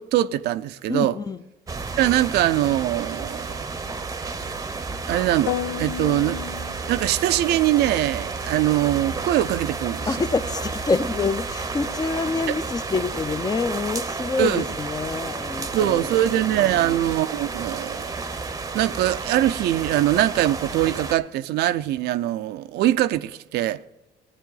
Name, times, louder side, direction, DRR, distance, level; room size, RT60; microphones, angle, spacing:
voice 1, 0.0-1.2 2.0-3.5 5.1-6.4 6.9-10.1 12.5-12.6 14.4-14.6 15.7-18.1 18.7-23.8, right 13 dB, 75° right, 0.5 m, -22 dB
voice 2, 0.9-1.4 10.1-16.9, left 4 dB, 25° left, 0.5 m, -27 dB
sound 1, 1.7-21.2, right 4 dB, 20° right, 0.7 m, -31 dB
sound 2, 5.5-7.4, left 11 dB, 85° left, 0.5 m, -31 dB
15.5 x 9.1 x 3.9 m
cardioid pair, 110°, 17 cm